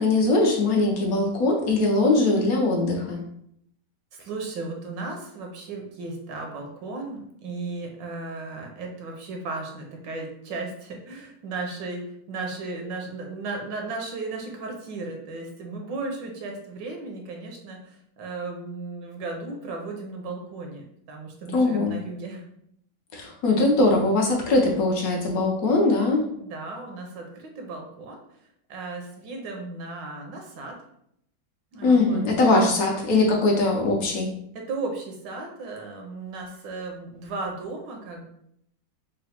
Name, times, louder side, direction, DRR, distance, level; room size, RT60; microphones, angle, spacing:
voice 1, 0.0-3.2 21.5-22.0 23.1-26.2 31.8-34.3, left 2 dB, 65° left, 0 dB, 0.9 m, -21 dB
voice 2, 4.2-22.4 26.3-28.2 28.7-30.8 31.7-32.9 34.5-38.2, right 3 dB, 75° right, 2 dB, 1.3 m, -35 dB
4.0 x 2.0 x 4.2 m, 0.72 s
omnidirectional pair, 2.1 m